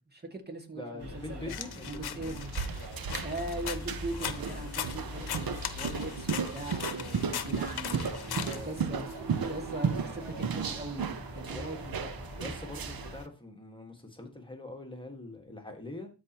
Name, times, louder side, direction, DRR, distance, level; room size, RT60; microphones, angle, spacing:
voice 1, 0.1-1.5 1.8-2.5 3.2-8.3 8.6-9.1 9.5-11.1 11.3-12.2, right 1 dB, 25° right, 2 dB, 2.2 m, -40 dB
voice 2, 0.7-2.4 8.4-8.7 11.5-11.7 12.4-16.1, left 2 dB, 10° left, 2 dB, 1.8 m, -43 dB
sound 1, 1.0-13.2, equal, 90° right, 3.0 m, -43 dB
sound 2, 1.5-9.1, left 8 dB, 70° left, 0.9 m, -40 dB
sound 3, 2.3-13.2, right 6 dB, 60° right, 0.9 m, -35 dB
13.0 x 5.1 x 3.0 m, 0.31 s
cardioid pair, 65°, 40 cm